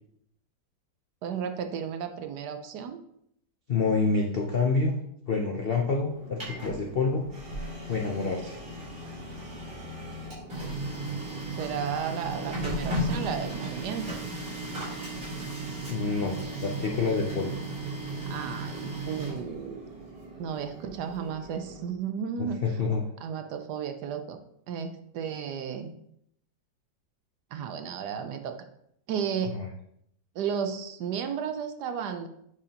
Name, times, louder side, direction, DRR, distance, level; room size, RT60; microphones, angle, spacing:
voice 1, 1.2-3.0 9.0-9.1 11.5-14.2 18.3-19.9 20.4-22.6 23.2-24.4 24.7-25.9 27.5-28.6 29.1-29.6 30.3-32.3, right 7 dB, 70° right, 7 dB, 1.1 m, -33 dB
voice 2, 3.7-5.0 5.3-7.3 7.9-8.6 15.9-17.5 22.4-23.0 29.5-29.7, left 4 dB, 65° left, 1 dB, 0.5 m, -27 dB
Printer, 6.1-21.9, right 1 dB, 35° right, 3.4 m, -36 dB
8.9 x 4.9 x 2.9 m, 0.73 s
omnidirectional pair, 2.0 m